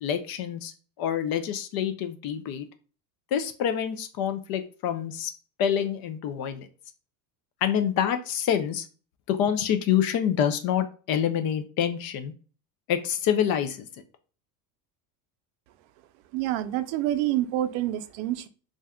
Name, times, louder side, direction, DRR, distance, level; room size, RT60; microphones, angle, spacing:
voice 1, 0.0-2.7 3.3-5.3 5.6-6.7 7.6-8.9 9.3-12.3 12.9-13.9, left 9 dB, 50° left, 9 dB, 0.5 m, -27 dB
voice 2, 16.3-18.5, right 13 dB, 75° right, 11 dB, 0.6 m, -27 dB
2.6 x 2.3 x 3.5 m, 0.38 s
cardioid pair, 125°, 47 cm